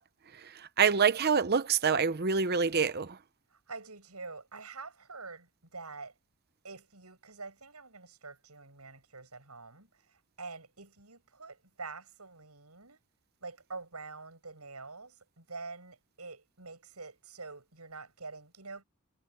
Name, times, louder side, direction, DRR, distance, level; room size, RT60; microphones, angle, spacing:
voice 1, 0.3-3.2, right 6 dB, 45° right, 0.8 m, -27 dB
voice 2, 3.5-6.1 6.6-13.0 13.4-18.8, right 4 dB, 85° right, 7.6 m, -46 dB
head